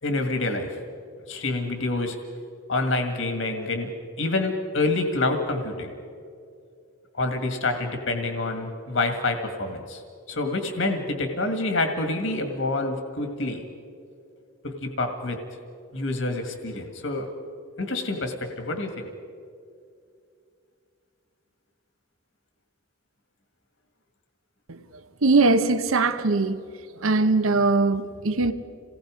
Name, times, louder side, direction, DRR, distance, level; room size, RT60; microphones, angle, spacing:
voice 1, 0.0-0.8 1.3-2.2 2.7-3.9 4.2-5.9 7.1-10.0 10.3-13.6 14.6-15.4 15.9-17.3 17.8-19.1, left 2 dB, 65° left, 1.9 m, -27 dB
voice 2, 25.2-26.7 27.0-28.5, right 3 dB, 85° right, 0.9 m, -21 dB
28.0 x 19.0 x 5.1 m
head